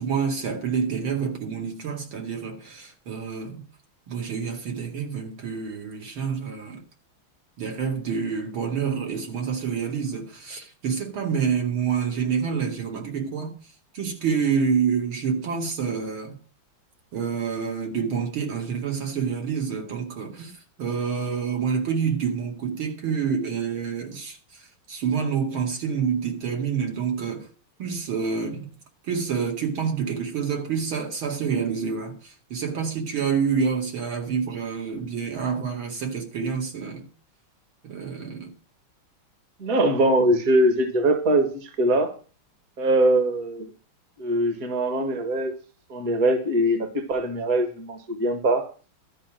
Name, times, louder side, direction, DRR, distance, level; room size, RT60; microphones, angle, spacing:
voice 1, 0.0-3.6 4.1-6.8 7.6-13.5 13.9-16.3 17.1-20.5 20.8-27.5 27.8-28.7 29.1-37.0 37.8-38.5, right 6 dB, 75° right, 3.1 m, -27 dB
voice 2, 39.6-42.1 42.8-43.7 44.2-45.5 45.9-48.7, right 1 dB, 45° right, 1.9 m, -22 dB
13.0 x 5.2 x 8.9 m
omnidirectional pair, 2.3 m